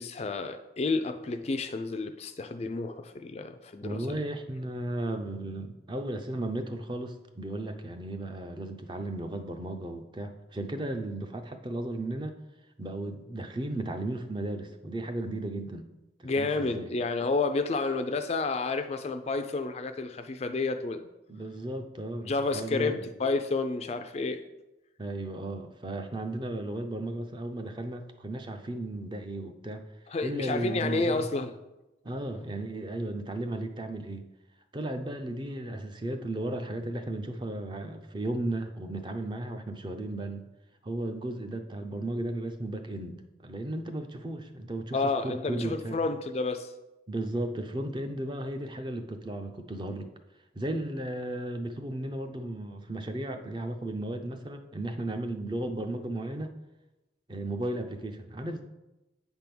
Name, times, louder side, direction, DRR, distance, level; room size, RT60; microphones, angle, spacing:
voice 1, 0.0-4.2 16.2-21.1 22.3-24.4 30.1-31.5 44.9-46.7, left 3 dB, 35° left, 8 dB, 0.4 m, -30 dB
voice 2, 3.8-12.3 12.8-15.8 16.2-16.9 21.3-23.0 25.0-29.8 30.2-31.3 32.0-34.3 34.7-40.5 40.8-45.0 45.2-46.0 47.1-50.1 50.5-56.5 57.3-58.6, right 1 dB, 25° right, 6 dB, 0.5 m, -35 dB
8.4 x 3.5 x 5.9 m, 1.0 s
head